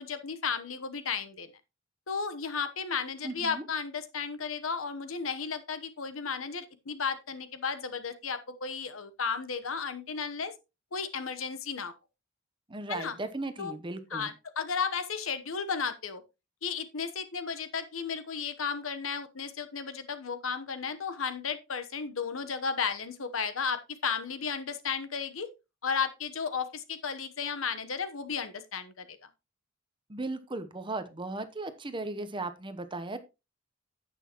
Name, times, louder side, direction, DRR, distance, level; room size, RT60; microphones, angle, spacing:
voice 1, 0.0-1.5 2.1-10.5 10.9-11.9 12.9-13.1 13.6-13.7 14.1-16.2 16.6-25.5 25.8-29.1, left 6 dB, 90° left, 1.1 m, -34 dB
voice 2, 3.2-3.6 12.7-14.3 30.1-33.2, right 2 dB, 25° right, 0.9 m, -36 dB
9.8 x 8.4 x 3.0 m
head